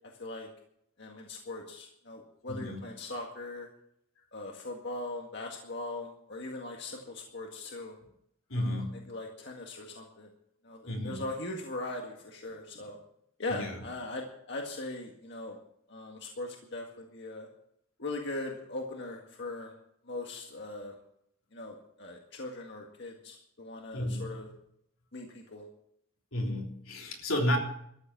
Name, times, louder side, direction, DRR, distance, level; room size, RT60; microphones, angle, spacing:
voice 1, 1.0-3.7 4.3-8.0 8.5-10.3 10.6-13.0 13.4-15.6 15.9-17.5 18.0-19.7 20.0-21.0 21.5-24.5 25.1-25.7, left 2 dB, 55° left, 1 dB, 1.8 m, -40 dB
voice 2, 2.5-2.8 8.5-9.1 10.9-11.2 13.5-13.8 23.9-24.4 26.3-27.6, left 1 dB, 85° left, 0 dB, 3.5 m, -32 dB
13.5 x 8.7 x 8.4 m, 0.71 s
head